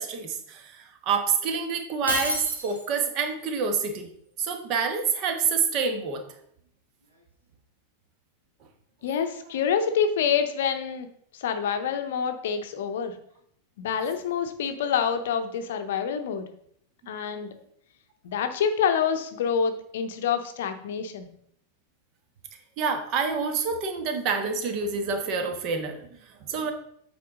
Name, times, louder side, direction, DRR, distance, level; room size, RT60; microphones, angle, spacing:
voice 1, 0.0-4.1 4.4-6.2 22.8-26.7, right 5 dB, 40° right, 6 dB, 1.1 m, -27 dB
Shatter, 2.1-3.1, equal, 90° right, 1.5 m, -29 dB
voice 2, 9.0-11.1 11.3-13.2 13.8-16.5 17.1-17.5 18.2-21.3, left 7 dB, 55° left, 8 dB, 0.7 m, -27 dB
8.3 x 4.4 x 3.7 m, 0.67 s
figure-of-eight pair, 90°, 0 cm